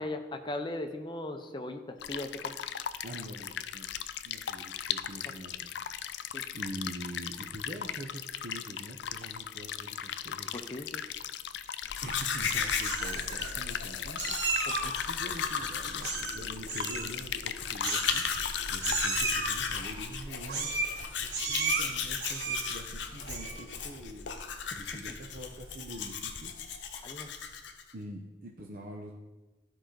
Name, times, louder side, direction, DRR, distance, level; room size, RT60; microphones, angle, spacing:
voice 1, 0.0-2.5 6.3-6.4 10.5-11.0 14.8-14.9 26.9-27.3, left 1 dB, 25° left, 6 dB, 0.7 m, -38 dB
sound 1, 2.0-19.2, left 9 dB, 70° left, 0.4 m, -38 dB
voice 2, 3.0-3.9 4.2-10.5 12.0-26.5 27.9-29.1, right 1 dB, 50° right, 0 dB, 0.8 m, -45 dB
Domestic sounds home sounds, 11.8-27.9, left 6 dB, 85° left, 0.7 m, -36 dB
Meow, 12.1-12.5 12.8-13.5 14.2-15.0 16.0-16.4 16.7-17.1 17.8-18.5 18.8-19.6 20.5-21.0 21.3-21.8 22.2-22.8 23.2-23.6, right 4 dB, 75° right, 1.4 m, -33 dB
12.5 x 4.9 x 3.9 m, 1.2 s
head